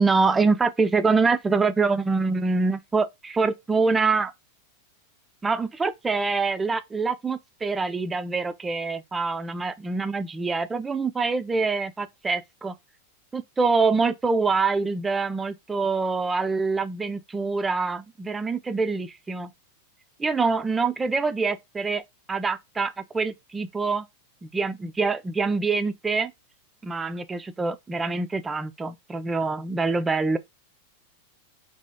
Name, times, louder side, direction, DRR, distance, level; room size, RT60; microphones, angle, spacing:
voice 1, 0.0-4.3 5.4-12.7 13.3-19.5 20.2-22.0 22.3-24.1 24.4-26.3 26.8-30.4, right 4 dB, 15° right, 0.4 m, -25 dB
2.8 x 2.4 x 3.5 m
figure-of-eight pair, 90°, 0 cm